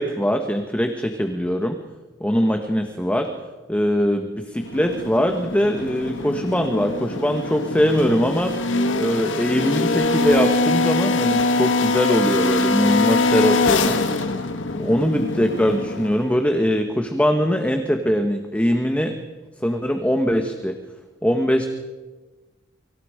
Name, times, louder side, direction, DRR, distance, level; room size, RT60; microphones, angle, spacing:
voice 1, 0.0-1.8 2.2-3.3 3.7-8.6 9.0-14.0 14.8-19.1 19.6-20.8 21.2-21.7, equal, 5° left, 5 dB, 1.4 m, -21 dB
sound 1, 4.6-16.4, left 3 dB, 80° left, 1.8 m, -23 dB
29.5 x 24.5 x 5.1 m, 1.2 s
head